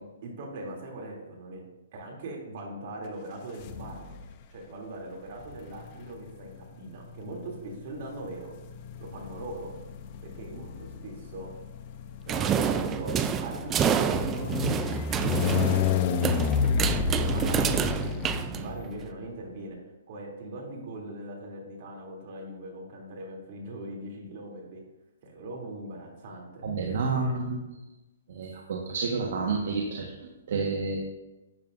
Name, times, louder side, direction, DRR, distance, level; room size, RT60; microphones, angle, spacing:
voice 1, 0.2-1.6 1.9-4.2 4.5-8.5 9.0-9.7 10.2-11.5 12.3-13.2 13.4-14.6 15.3-16.4 17.2-19.8 20.1-24.8 25.2-26.6 27.0-27.3, right 1 dB, 45° right, -1 dB, 3.0 m, -40 dB
sound 1, 3.6-4.3 5.4-19.1, left 7 dB, 35° left, 0.8 m, -31 dB
sound 2, 12.3-19.0, right 8 dB, 15° right, 0.4 m, -28 dB
voice 2, 26.6-27.6 28.3-31.0, right 4 dB, 60° right, -1 dB, 1.5 m, -30 dB
12.0 x 8.9 x 2.7 m, 1.1 s
hypercardioid pair, 150°, 0 cm